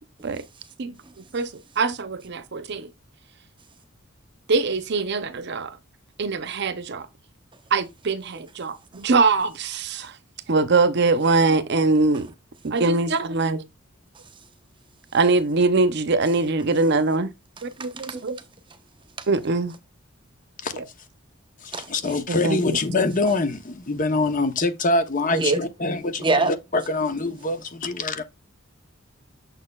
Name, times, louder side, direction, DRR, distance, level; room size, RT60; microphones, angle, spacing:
voice 1, 1.8-2.9 4.5-5.8 6.2-7.1 7.7-10.1 10.5-12.3 12.6-13.6 15.1-17.3 17.6-18.4 19.3-19.7 20.7-20.8 22.3-22.8, right 3 dB, 55° right, 0.7 m, -22 dB
voice 2, 17.9-18.2 19.2-19.3 21.7-21.9 25.3-25.6 26.2-26.5, right 3 dB, 25° right, 1.0 m, -24 dB
voice 3, 21.6-28.2, left 2 dB, 40° left, 0.9 m, -24 dB
6.6 x 6.5 x 2.3 m
head